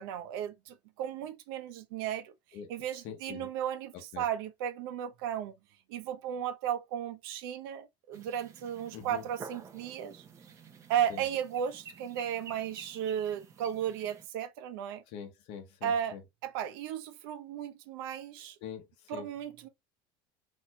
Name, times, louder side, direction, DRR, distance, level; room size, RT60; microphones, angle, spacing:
voice 1, 0.0-2.3 2.7-5.5 5.9-10.2 10.9-15.0 15.8-16.2 16.4-18.6 19.1-19.7, right 9 dB, 85° right, 0.7 m, -35 dB
voice 2, 3.0-3.5 3.9-4.2 8.9-9.2 11.1-11.2 15.1-16.2 18.4-19.3, left 8 dB, 55° left, 0.8 m, -44 dB
sound 1, 8.1-14.3, right 5 dB, 25° right, 0.7 m, -51 dB
4.3 x 2.7 x 2.2 m
cardioid pair, 160°, 12 cm